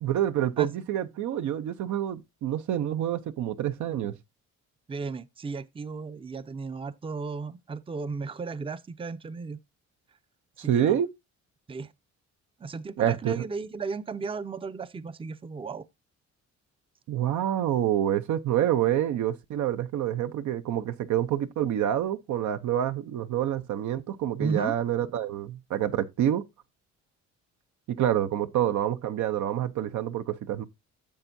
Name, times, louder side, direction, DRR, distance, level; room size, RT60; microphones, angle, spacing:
voice 1, 0.0-4.1 10.6-11.1 13.0-13.5 17.1-26.4 27.9-30.6, right 11 dB, 70° right, 0.7 m, -27 dB
voice 2, 4.9-9.6 10.6-11.0 11.7-11.9 12.6-15.8 24.4-24.7, right 4 dB, 20° right, 0.5 m, -34 dB
10.5 x 7.1 x 2.6 m
cardioid pair, 90°, 30 cm